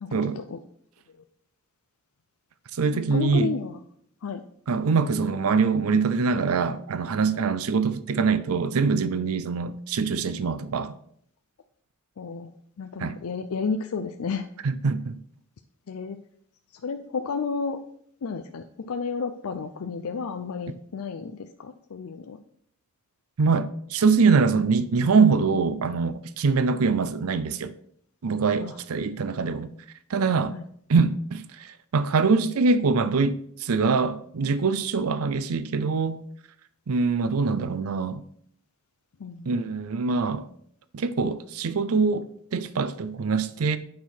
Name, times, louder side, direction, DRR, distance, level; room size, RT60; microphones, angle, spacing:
voice 1, 0.0-0.6 3.1-3.8 4.2-4.4 12.2-12.5 12.8-14.5 15.9-16.2 16.7-17.8 18.2-22.4 28.6-28.8 30.5-30.6 39.2-39.5, left 5 dB, 85° left, 0.5 m, -32 dB
voice 2, 2.7-3.5 4.7-10.9 13.0-13.2 14.6-15.2 23.4-27.7 28.2-29.7 30.1-30.5 30.9-36.2 36.9-38.2 39.5-40.5 40.9-43.8, right 4 dB, 85° right, 0.5 m, -24 dB
8.5 x 5.8 x 4.4 m
head